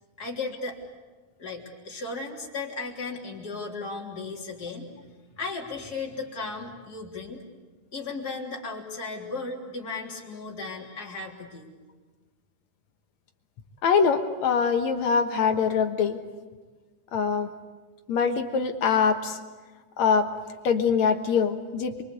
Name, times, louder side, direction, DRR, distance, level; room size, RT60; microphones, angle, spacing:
voice 1, 0.2-0.8 1.4-4.9 5.4-7.4 7.9-11.7, left 3 dB, 30° left, -1 dB, 3.8 m, -35 dB
voice 2, 13.8-16.2 17.1-17.5 18.1-19.4 20.0-20.3 20.6-22.0, left 6 dB, 65° left, 6 dB, 2.5 m, -23 dB
28.0 x 23.5 x 8.3 m, 1.4 s
omnidirectional pair, 3.6 m